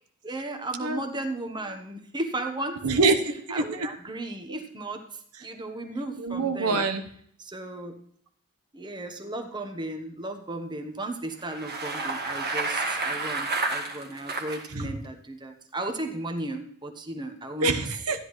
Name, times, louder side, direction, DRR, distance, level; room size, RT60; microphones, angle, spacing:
voice 1, 0.2-3.0 3.5-5.0 5.4-6.9 7.4-8.0 8.7-17.8, right 2 dB, 20° right, 5 dB, 1.1 m, -35 dB
voice 2, 2.8-3.9 4.5-4.6 6.2-7.0 14.7-14.9 17.6-18.2, right 3 dB, 80° right, 7 dB, 1.0 m, -25 dB
Bicycle, 11.4-14.7, right 3 dB, 45° right, 1.5 m, -30 dB
13.0 x 10.0 x 3.2 m, 0.64 s
head